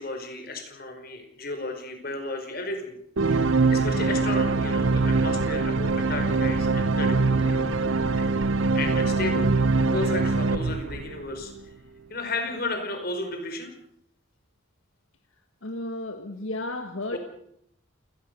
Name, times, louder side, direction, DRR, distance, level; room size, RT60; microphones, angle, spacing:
voice 1, 0.0-2.9 3.3-7.6 8.1-8.3 8.7-9.5 9.9-11.5 12.1-13.7 17.1-17.2, left 2 dB, 45° left, 6 dB, 5.1 m, -34 dB
sound 1, 3.2-11.6, right 3 dB, 70° right, 1.0 m, -23 dB
voice 2, 15.6-17.2, left 2 dB, 75° left, 7 dB, 1.7 m, -33 dB
28.5 x 19.0 x 6.9 m, 0.73 s
head